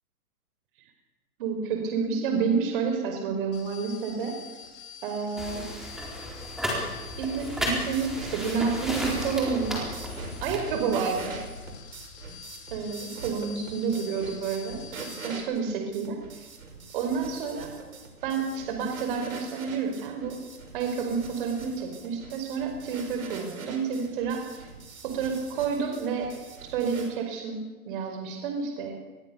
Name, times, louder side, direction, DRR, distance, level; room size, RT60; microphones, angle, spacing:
voice 1, 1.4-4.4 5.0-5.6 7.2-9.8 10.4-11.3 12.7-16.2 16.9-17.7 18.2-20.4 20.7-24.7 25.0-26.3 26.7-28.9, right 5 dB, 35° right, 3 dB, 4.9 m, -29 dB
sound 1, 3.5-15.4, left 7 dB, 45° left, 7.0 m, -46 dB
sound 2, 5.4-10.6, equal, ahead, 4.2 m, -33 dB
sound 3, 7.4-27.1, right 4 dB, 65° right, 6.2 m, -43 dB
26.0 x 21.5 x 7.0 m, 1.2 s
hypercardioid pair, 150°, 45 cm